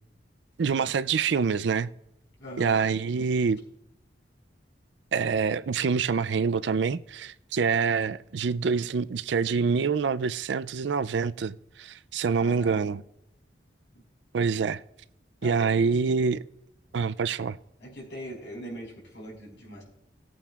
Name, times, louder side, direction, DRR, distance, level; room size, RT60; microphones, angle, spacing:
voice 1, 0.6-1.9 2.6-3.6 5.1-13.0 14.3-14.8 15.4-16.5 16.9-17.6, right 5 dB, 70° right, 0.4 m, -26 dB
voice 2, 2.4-2.8 12.4-12.8 15.4-15.7 17.8-19.8, equal, 70° left, 5.0 m, -41 dB
19.0 x 8.8 x 2.4 m
head